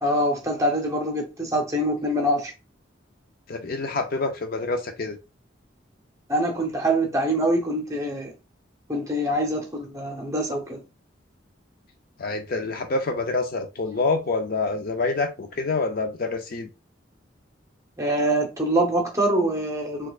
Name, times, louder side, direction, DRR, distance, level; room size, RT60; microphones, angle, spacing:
voice 1, 0.0-2.5 6.3-8.3 8.9-10.8 18.0-20.1, right 1 dB, 15° right, 0.9 m, -24 dB
voice 2, 3.5-5.2 12.2-16.7, left 3 dB, 50° left, 0.5 m, -27 dB
4.3 x 2.3 x 2.4 m
head